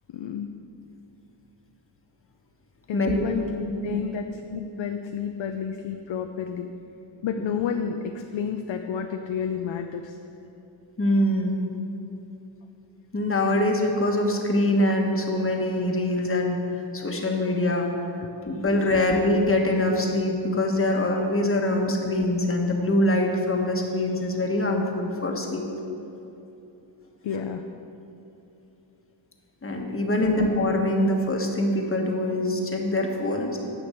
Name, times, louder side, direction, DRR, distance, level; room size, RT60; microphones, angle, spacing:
voice 1, 0.1-0.5 2.9-6.7 7.2-10.2 18.9-19.0 21.7-21.9 27.2-27.6 30.2-30.4, left 7 dB, 70° left, 5 dB, 0.6 m, -31 dB
voice 2, 2.9-3.2 3.8-4.0 7.4-7.5 11.0-11.6 13.1-16.6 16.9-17.9 18.4-25.7 29.6-33.6, left 1 dB, 25° left, 1 dB, 1.3 m, -24 dB
10.0 x 6.0 x 7.7 m, 2.9 s
wide cardioid pair, 145°, 47 cm